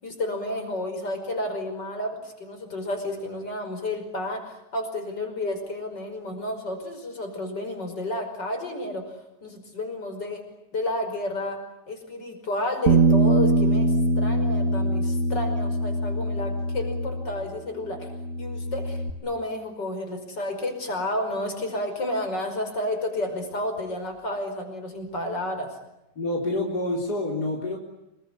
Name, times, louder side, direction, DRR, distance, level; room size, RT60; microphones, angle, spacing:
voice 1, 0.0-10.4 10.7-11.6 11.9-18.1 18.4-25.7, left 1 dB, 85° left, 5 dB, 6.0 m, -31 dB
Bass guitar, 12.9-17.6 17.9-19.1, right 2 dB, 50° right, 1.8 m, -23 dB
voice 2, 26.2-27.8, left 2 dB, 65° left, 0 dB, 4.6 m, -27 dB
27.0 x 22.5 x 9.6 m, 0.89 s
omnidirectional pair, 1.8 m